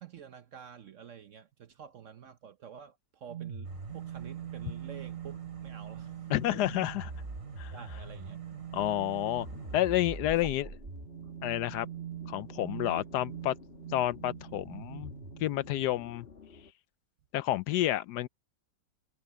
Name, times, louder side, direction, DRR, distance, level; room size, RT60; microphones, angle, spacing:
voice 1, 0.0-6.3 7.7-8.6 10.4-10.5 11.2-11.3 12.9-13.1, right 8 dB, 55° right, 0.9 m, -49 dB
sound 1, 3.3-16.1, right 7 dB, 35° right, 1.0 m, -42 dB
sound 2, 3.6-10.2, right 3 dB, 85° right, 4.3 m, -52 dB
voice 2, 6.3-7.1 7.6-7.7 8.7-9.5 9.7-10.7 11.4-11.9 12.3-13.5 13.9-15.1 15.4-16.3 17.3-18.3, left 14 dB, 75° left, 1.1 m, -30 dB
sound 3, 8.7-16.7, left 5 dB, 35° left, 1.7 m, -52 dB
omnidirectional pair, 1.9 m